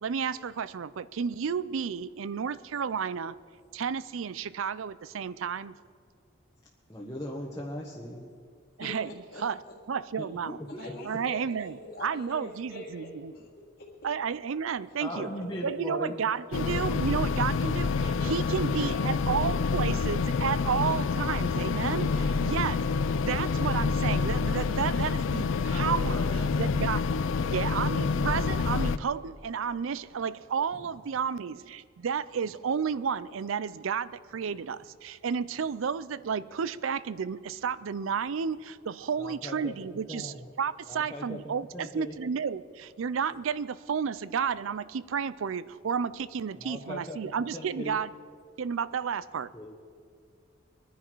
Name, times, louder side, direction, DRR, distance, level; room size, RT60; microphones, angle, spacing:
voice 1, 0.0-3.4 3.7-5.7 8.8-9.6 9.9-10.6 11.0-13.3 14.0-15.3 15.6-26.3 26.6-27.0 27.5-48.1 48.6-49.5, right 6 dB, 80° right, 0.4 m, -32 dB
voice 2, 6.9-8.3 10.2-10.8 14.9-16.2 39.2-39.7 40.1-40.4 40.9-42.2 46.6-47.2 47.5-48.0 49.5-49.7, left 1 dB, 15° left, 1.2 m, -39 dB
voice 3, 8.8-9.7 10.7-13.5 13.8-13.9 18.1-19.6 21.9-22.3 25.7-26.5 27.1-27.5, left 1 dB, 55° left, 1.8 m, -44 dB
sound 1, 16.5-29.0, left 4 dB, 75° left, 0.4 m, -27 dB
24.0 x 10.0 x 4.6 m
head